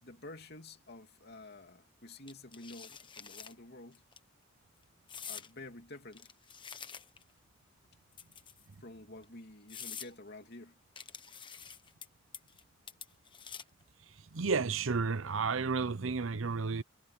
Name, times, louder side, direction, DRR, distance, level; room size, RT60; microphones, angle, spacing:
voice 1, 0.0-4.0 5.3-6.3 8.8-10.8, left 2 dB, 55° left, 3.0 m, -50 dB
sound 1, 2.3-3.5 3.9-4.2 5.1-5.5 6.1-7.3 8.1-8.7 9.2-9.3 9.7-10.1 11.0-12.1 12.3-12.6 12.9-13.8, left 7 dB, 25° left, 1.3 m, -47 dB
voice 2, 14.3-16.8, right 4 dB, 80° right, 0.8 m, -32 dB
head